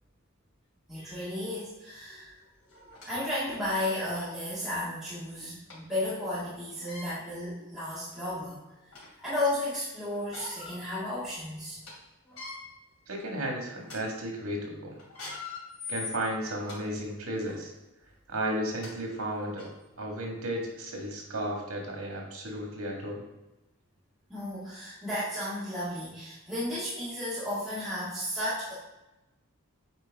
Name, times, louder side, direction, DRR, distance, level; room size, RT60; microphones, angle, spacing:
voice 1, 0.9-2.4 3.0-8.6 9.2-11.8 24.3-28.7, left 1 dB, ahead, -11 dB, 1.7 m, -33 dB
sound 1, 1.9-2.0 2.7-3.1 3.7-3.8 4.1-4.4 5.7-5.8 6.7-7.1 7.9-8.0 8.5-9.2 10.1-10.8 11.2-11.3 11.6-11.9 12.2-12.6 13.2-13.4 13.8-14.0 15.0-16.8 17.4-17.6 18.4-18.5 18.8-18.9 19.6-19.7, left 4 dB, 80° left, 2.5 m, -42 dB
voice 2, 13.1-15.0 15.9-17.7 18.3-19.7 20.0-23.2, right 1 dB, 80° right, 0 dB, 1.7 m, -34 dB
8.1 x 4.4 x 3.5 m, 0.99 s
head